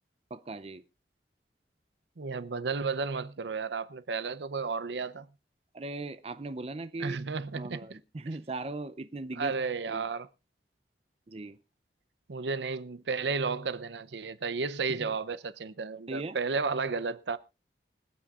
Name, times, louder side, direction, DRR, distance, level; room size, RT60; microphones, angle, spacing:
voice 1, 0.3-0.8 5.7-7.2 7.5-9.5 9.9-10.1 11.3-11.6 14.9-15.1 16.1-16.4, right 2 dB, 35° right, 0.5 m, -38 dB
voice 2, 2.2-5.3 7.0-8.0 9.4-10.3 12.3-17.4, right 4 dB, 80° right, 0.6 m, -33 dB
25.0 x 8.7 x 2.4 m
head